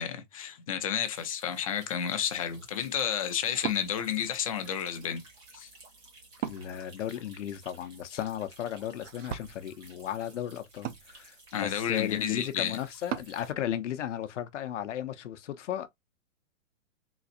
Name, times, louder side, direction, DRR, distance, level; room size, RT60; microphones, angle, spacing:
voice 1, 0.0-5.2 5.5-5.7 11.5-12.8, left 9 dB, 30° left, 0.5 m, -31 dB
sound 1, 1.0-13.5, right 2 dB, 15° right, 0.7 m, -55 dB
Wood, 2.2-13.4, right 10 dB, 65° right, 0.6 m, -44 dB
voice 2, 6.5-11.4 11.6-15.9, left 10 dB, 65° left, 0.8 m, -35 dB
4.0 x 2.4 x 2.5 m
hypercardioid pair, 165°, 39 cm